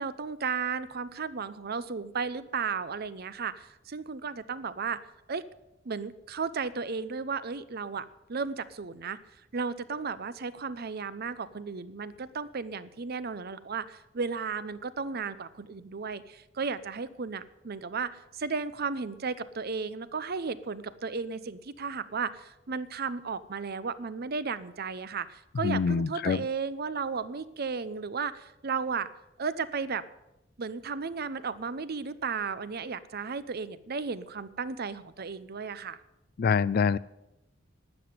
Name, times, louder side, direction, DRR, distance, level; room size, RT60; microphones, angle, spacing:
voice 1, 0.0-5.0 5.3-5.4 5.8-9.2 9.5-29.1 29.4-30.0 30.6-36.0, right 5 dB, 50° right, 15 dB, 0.7 m, -34 dB
voice 2, 25.6-26.4 36.4-37.0, left 5 dB, 50° left, 19 dB, 0.4 m, -25 dB
12.5 x 7.8 x 9.3 m, 0.92 s
head